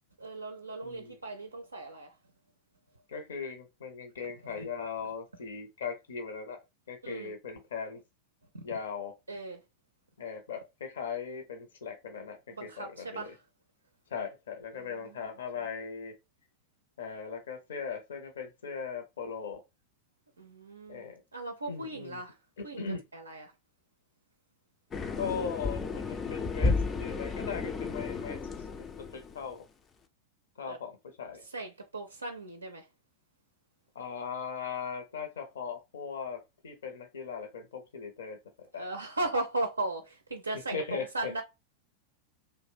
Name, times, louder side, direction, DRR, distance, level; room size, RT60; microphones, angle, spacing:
voice 1, 0.2-2.1 4.4-4.7 7.0-7.3 8.5-8.6 9.3-9.6 12.5-13.4 14.7-15.2 20.4-21.0 21.3-22.4 22.6-22.8 23.1-23.5 30.7-30.8 31.5-32.9 38.7-41.4, right 2 dB, 80° right, 0.4 m, -37 dB
voice 2, 0.8-1.2 3.1-6.6 6.9-8.0 8.6-9.1 10.2-13.3 14.1-16.1 17.0-19.6 20.9-21.2 21.7-22.2 22.8-23.0 25.2-28.4 29.1-29.6 30.6-31.4 33.9-38.9 40.7-41.3, left 6 dB, 65° left, 0.6 m, -39 dB
sound 1, 24.9-29.5, left 3 dB, 20° left, 0.4 m, -33 dB
2.5 x 2.1 x 3.4 m
figure-of-eight pair, 90°, 0 cm